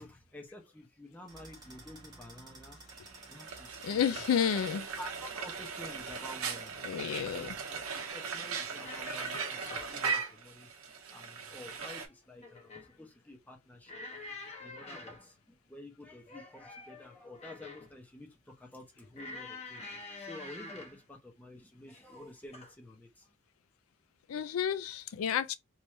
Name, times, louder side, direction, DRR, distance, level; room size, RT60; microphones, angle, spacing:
voice 1, 0.0-2.8 3.3-4.2 5.0-7.8 8.1-10.7 11.1-14.0 14.6-23.3, left 1 dB, 10° left, 0.8 m, -50 dB
sound 1, 1.3-7.9, right 2 dB, 20° right, 1.0 m, -55 dB
Frying (food), 2.9-12.1, right 5 dB, 90° right, 0.8 m, -39 dB
voice 2, 3.8-4.9 6.8-7.6 24.3-25.6, left 8 dB, 85° left, 0.4 m, -31 dB
sound 2, 8.7-10.0 11.5-12.1 12.4-12.9 13.9-15.3 16.3-17.9 19.1-21.0 21.9-22.2 22.5-22.7, left 3 dB, 30° left, 0.9 m, -46 dB
3.1 x 2.6 x 3.1 m
head